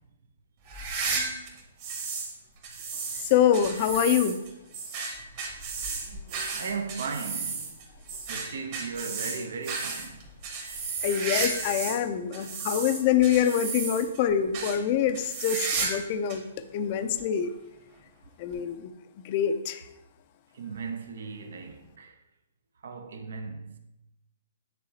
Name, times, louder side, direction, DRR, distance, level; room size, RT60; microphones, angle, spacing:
sound 1, 0.7-2.3 2.6-12.0 12.3-14.2 14.5-14.8 15.1-16.0 16.3-16.4 17.2-17.3 18.5-18.6, right 4 dB, 45° right, 1.6 m, -33 dB
voice 1, 3.2-4.3 11.0-16.5 16.7-17.5 18.4-18.9 19.2-19.8, left 9 dB, 40° left, 0.5 m, -25 dB
voice 2, 5.8-7.8 8.3-10.2 20.5-22.2 22.8-23.8, right 5 dB, 65° right, 0.7 m, -37 dB
9.1 x 3.9 x 2.8 m
hypercardioid pair, 125°, 0 cm